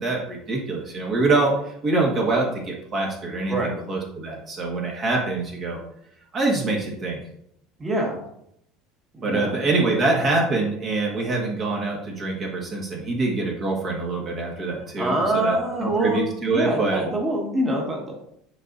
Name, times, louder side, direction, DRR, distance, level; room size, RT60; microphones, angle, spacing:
voice 1, 0.0-5.8 6.3-7.2 9.2-17.0, right 3 dB, 35° right, -1 dB, 1.5 m, -25 dB
voice 2, 3.5-3.8 7.8-8.2 9.1-9.5 15.0-16.2 16.5-18.2, right 1 dB, 20° right, -1 dB, 1.7 m, -25 dB
9.9 x 4.0 x 2.6 m, 0.73 s
supercardioid pair, 125°, 0 cm